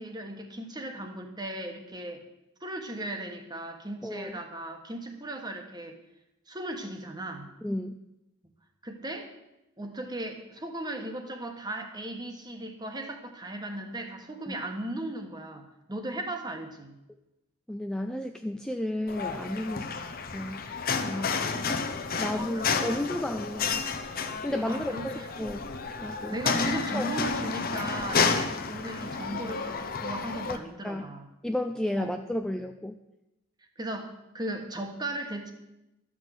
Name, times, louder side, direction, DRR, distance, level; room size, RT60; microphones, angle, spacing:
voice 1, 0.0-2.2 2.6-6.0 6.5-7.5 8.8-9.3 9.8-15.6 15.9-16.9 21.1-21.8 22.2-23.1 24.6-25.3 26.3-31.3 31.9-32.1 33.8-35.5, right 1 dB, 20° right, 5 dB, 1.4 m, -37 dB
voice 2, 4.0-4.4 7.6-7.9 14.5-14.6 17.7-19.9 20.3-20.6 21.0-21.4 21.7-23.8 24.4-25.1 25.4-25.7 26.0-26.4 26.9-27.1 30.5-30.6 30.8-31.0 31.4-32.9, left 1 dB, 5° left, 5 dB, 0.4 m, -32 dB
sound 1, 19.1-30.6, left 5 dB, 50° left, 0.9 m, -31 dB
13.0 x 6.2 x 8.1 m, 0.93 s
head